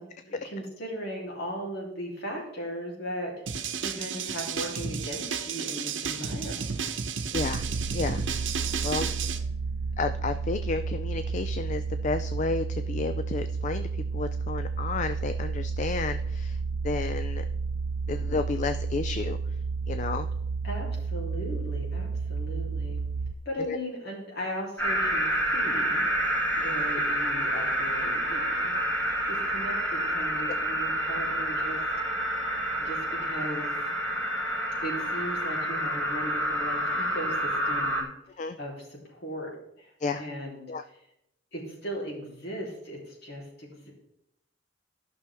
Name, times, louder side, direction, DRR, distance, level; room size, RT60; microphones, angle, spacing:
voice 1, 0.0-6.7 6.9-7.1 20.6-23.0 23.4-25.3 25.5-26.1 26.6-28.7 29.3-31.8 32.8-33.8 34.8-38.1 38.6-39.5 39.8-40.7 41.5-43.9, equal, 60° left, -3 dB, 3.1 m, -37 dB
sound 1, 3.5-9.4, right 6 dB, 85° right, 0.8 m, -32 dB
voice 2, 7.3-7.6 7.9-8.2 8.8-9.1 10.0-16.6 16.8-17.4 18.1-19.4 19.9-20.3 23.6-23.8 38.4-38.6 40.0-40.2 40.7-40.8, left 4 dB, 40° left, 10 dB, 0.3 m, -31 dB
sound 2, 7.3-23.3, right 4 dB, 45° right, 0.4 m, -31 dB
sound 3, 24.8-38.0, equal, 10° left, 1.8 m, -28 dB
14.0 x 6.1 x 3.5 m, 0.81 s
head